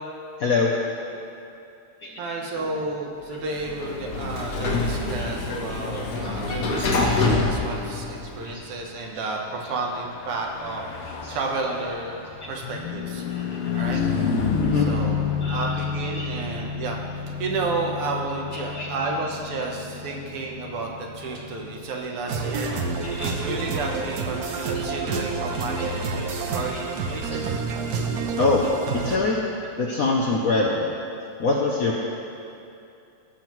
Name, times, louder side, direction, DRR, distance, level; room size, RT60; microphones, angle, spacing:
voice 1, 0.4-0.7 2.0-2.2 4.6-4.7 5.2-5.3 8.4-8.6 8.9-9.0 11.2-11.3 12.4-12.5 13.3-13.8 14.6-14.9 15.4-15.7 16.1-16.4 18.5-19.1 19.6-19.7 23.1-23.3 24.7-25.1 25.5-25.9 26.3-26.8 28.4-28.7 28.9-29.4 29.8-30.9 31.4-32.0, left 3 dB, 70° left, -2 dB, 0.8 m, -25 dB
voice 2, 2.2-13.2 13.7-14.0 14.4-17.0 17.4-27.6, right 3 dB, 85° right, 0 dB, 2.0 m, -32 dB
Sliding door, 3.4-8.6, left 3 dB, 50° left, 1.2 m, -26 dB
Car passing by / Truck, 9.9-23.6, left 5 dB, 90° left, 1.8 m, -30 dB
sound 1, 22.3-29.2, right 4 dB, 65° right, 0.9 m, -28 dB
16.5 x 7.3 x 3.1 m, 2.7 s
omnidirectional pair, 2.4 m